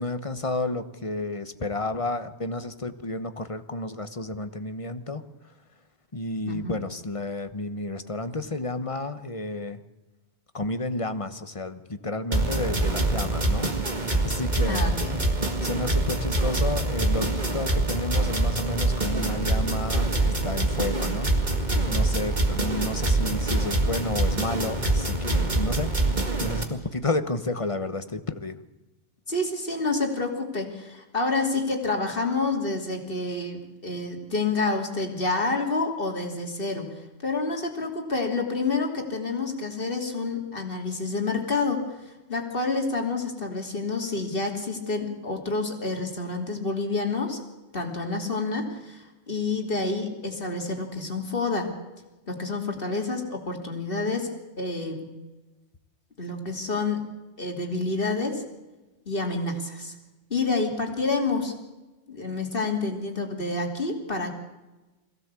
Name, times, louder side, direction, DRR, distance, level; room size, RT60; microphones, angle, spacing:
voice 1, 0.0-5.5 6.1-9.8 10.5-14.9 15.6-25.9 26.4-28.6, left 2 dB, 30° left, 11 dB, 1.1 m, -31 dB
sound 1, 12.3-26.6, right 2 dB, 40° right, 2.2 m, -25 dB
voice 2, 14.7-15.2 29.3-47.4 47.7-51.7 52.3-54.3 54.6-55.0 56.2-57.0 57.4-58.4 59.1-59.9 60.3-61.5 62.1-64.3, left 3 dB, 50° left, 3 dB, 3.2 m, -28 dB
22.0 x 16.0 x 8.3 m, 1.1 s
omnidirectional pair, 1.2 m